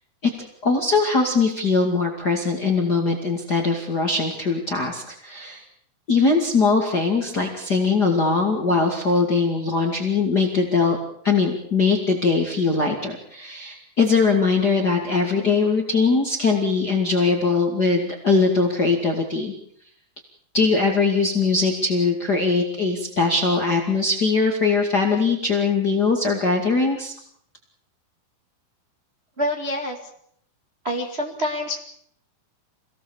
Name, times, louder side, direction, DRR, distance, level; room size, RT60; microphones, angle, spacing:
voice 1, 0.6-5.6 6.1-11.0 11.2-19.5 20.5-27.1, left 4 dB, 30° left, 2 dB, 2.4 m, -21 dB
voice 2, 29.4-30.0 30.8-31.8, equal, 25° right, 1 dB, 1.7 m, -26 dB
26.5 x 18.5 x 7.2 m, 0.68 s
omnidirectional pair, 4.4 m